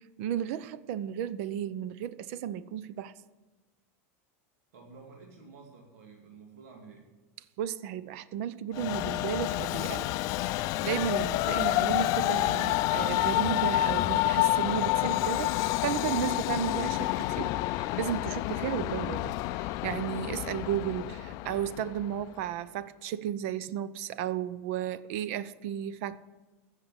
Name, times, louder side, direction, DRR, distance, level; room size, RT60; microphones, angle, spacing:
voice 1, 0.0-3.1 7.6-10.1 10.4-15.6 15.8-26.2, right 10 dB, 65° right, 0.7 m, -34 dB
voice 2, 4.7-7.1, right 4 dB, 85° right, 2.3 m, -51 dB
Train, 8.7-22.2, left 17 dB, 50° left, 0.4 m, -29 dB
15.0 x 6.5 x 8.2 m
supercardioid pair, 140°, 8 cm